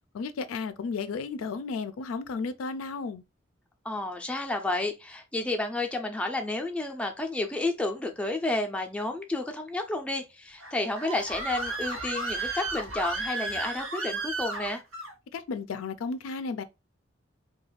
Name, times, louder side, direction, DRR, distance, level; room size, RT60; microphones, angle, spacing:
voice 1, 0.1-3.2 15.3-16.6, left 4 dB, 85° left, 0.4 m, -33 dB
voice 2, 3.8-14.8, left 2 dB, 5° left, 0.4 m, -31 dB
Screaming, 10.6-15.1, right 2 dB, 85° right, 0.9 m, -33 dB
2.4 x 2.2 x 3.1 m
head